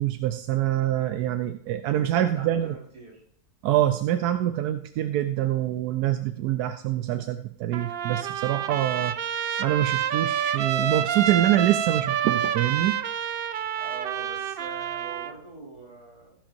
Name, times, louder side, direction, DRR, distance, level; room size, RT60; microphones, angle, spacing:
voice 1, 0.0-2.7 3.6-9.2 9.6-13.0, right 12 dB, 90° right, 9 dB, 1.1 m, -25 dB
voice 2, 1.9-3.2 13.8-16.4, right 3 dB, 50° right, -4 dB, 4.9 m, -43 dB
Trumpet, 7.7-15.3, right 9 dB, 65° right, 0.5 m, -28 dB
14.5 x 11.5 x 2.7 m, 0.62 s
omnidirectional pair, 1.6 m